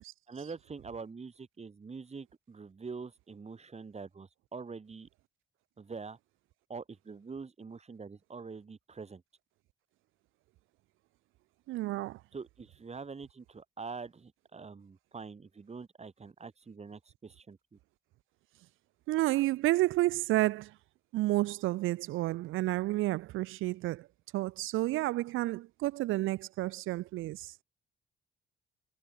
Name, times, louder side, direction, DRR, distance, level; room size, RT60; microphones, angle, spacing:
voice 1, 0.3-5.1 5.8-6.2 6.7-9.2 12.3-17.8, right 4 dB, 35° right, 5.7 m, -45 dB
voice 2, 11.7-12.2 19.1-20.8 21.1-24.1 24.3-27.6, right 17 dB, 85° right, 0.7 m, -30 dB
cardioid pair, 90°, 20 cm